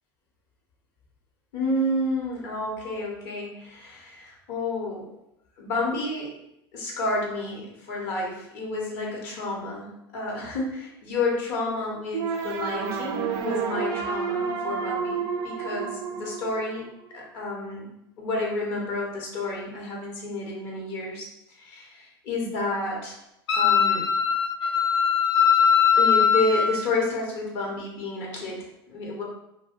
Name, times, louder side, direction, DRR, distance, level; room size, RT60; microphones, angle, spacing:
voice 1, 1.5-5.1 5.6-6.3 6.7-16.8 17.1-17.9 18.2-23.2 23.5-24.1 26.0-29.2, left 2 dB, 60° left, -2 dB, 0.9 m, -30 dB
sound 1, 12.1-17.2, right 6 dB, 60° right, 0.4 m, -30 dB
Wind instrument woodwind instrument, 23.5-26.7, left 7 dB, 90° left, 0.4 m, -20 dB
2.2 x 2.2 x 3.5 m, 0.83 s
hypercardioid pair, 90°, 13 cm